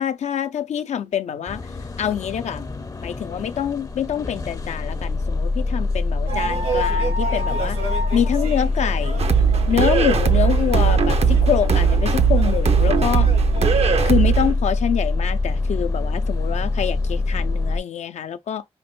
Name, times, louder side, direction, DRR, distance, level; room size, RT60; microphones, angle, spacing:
voice 1, 0.0-1.6 2.0-2.7 3.0-7.8 8.1-9.3 9.7-13.3 14.0-18.6, left 9 dB, 80° left, 0.4 m, -25 dB
sound 1, 1.5-17.8, left 3 dB, 30° left, 0.5 m, -24 dB
sound 2, 6.3-14.1, right 1 dB, 90° right, 2.0 m, -31 dB
sound 3, 9.2-14.5, right 8 dB, 65° right, 0.5 m, -19 dB
5.1 x 2.1 x 3.0 m
cardioid pair, 50°, 11 cm